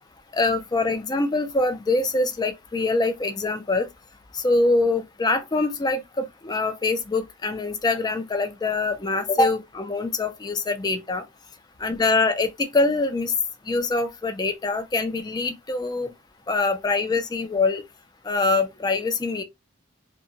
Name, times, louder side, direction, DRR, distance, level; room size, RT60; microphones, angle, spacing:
voice 1, 0.3-3.9 4.3-11.2 11.8-13.3 13.7-16.1 16.5-17.8 18.2-19.4, left 3 dB, 20° left, 0.4 m, -24 dB
2.8 x 2.2 x 2.6 m
head